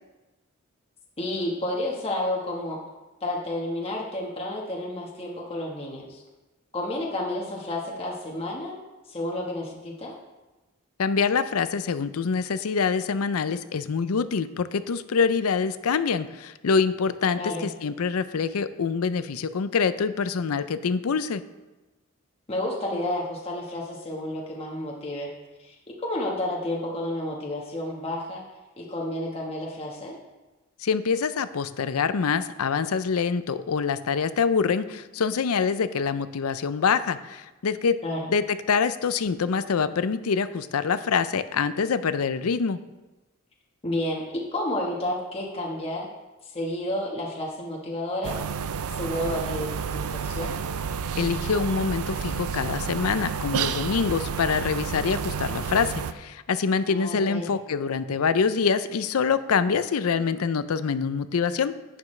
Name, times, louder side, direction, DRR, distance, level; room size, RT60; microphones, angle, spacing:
voice 1, 1.2-2.8 3.2-6.2 6.7-8.7 9.1-10.1 17.4-17.6 22.5-25.3 25.6-28.4 28.8-30.2 38.0-38.3 43.8-46.1 46.4-48.4 49.0-50.6 56.9-57.5, left 1 dB, 25° left, -2 dB, 1.3 m, -31 dB
voice 2, 11.0-21.4 30.8-38.0 38.3-42.8 51.2-61.8, left 5 dB, 85° left, 13 dB, 0.5 m, -25 dB
quiet interior station platform, 48.2-56.1, right 6 dB, 85° right, 0.5 m, -30 dB
11.0 x 9.4 x 3.3 m, 1.1 s
head